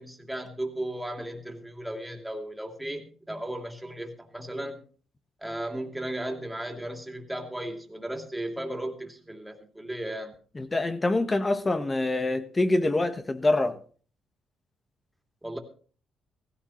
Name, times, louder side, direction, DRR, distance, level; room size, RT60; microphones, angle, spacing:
voice 1, 0.0-4.8 5.4-10.3 15.4-15.6, right 1 dB, 5° right, 2.6 m, -35 dB
voice 2, 10.5-13.8, left 2 dB, 25° left, 1.3 m, -25 dB
16.0 x 15.5 x 3.1 m
cardioid pair, 90°, 0 cm